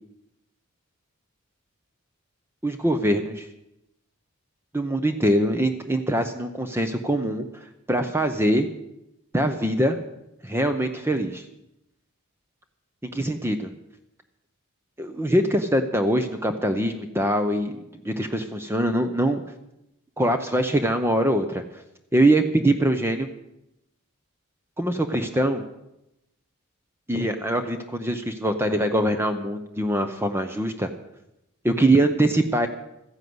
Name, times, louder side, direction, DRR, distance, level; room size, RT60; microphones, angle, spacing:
voice 1, 2.6-3.5 4.7-7.4 7.9-8.7 9.3-10.0 10.4-11.4 13.0-13.7 15.0-19.4 20.2-21.6 22.1-23.3 24.8-25.6 27.1-30.9 31.6-32.7, right 1 dB, 10° right, 7 dB, 0.8 m, -23 dB
14.0 x 10.5 x 7.9 m, 0.87 s
head